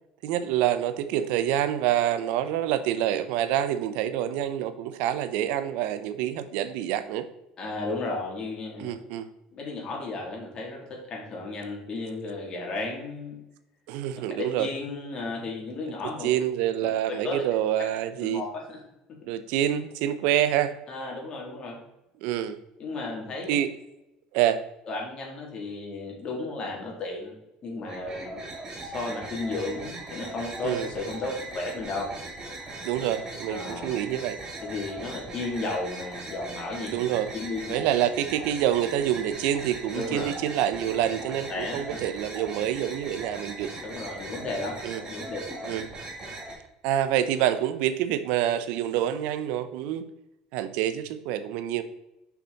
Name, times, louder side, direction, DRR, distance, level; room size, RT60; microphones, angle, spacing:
voice 1, 0.2-7.3 8.8-9.3 13.9-14.7 16.2-18.4 19.3-20.8 22.2-22.6 23.5-23.7 24.3-24.6 30.6-30.9 32.8-34.4 36.8-37.3 37.7-43.7 44.8-45.0 45.7-45.9 46.8-50.0 50.5-51.8, right 11 dB, 75° right, 12 dB, 0.7 m, -27 dB
voice 2, 7.6-8.9 9.5-13.4 14.6-16.3 17.2-17.4 18.2-18.8 20.9-21.8 22.8-23.6 24.9-28.5 28.8-32.1 33.5-33.9 34.6-37.0 37.3-37.8 39.9-40.3 41.5-41.8 43.8-44.8 45.1-45.7, left 2 dB, 40° left, -2 dB, 2.7 m, -34 dB
sound 1, 27.8-46.5, right 2 dB, 30° right, 2.1 m, -39 dB
6.0 x 5.8 x 4.0 m, 0.91 s
supercardioid pair, 110°, 2 cm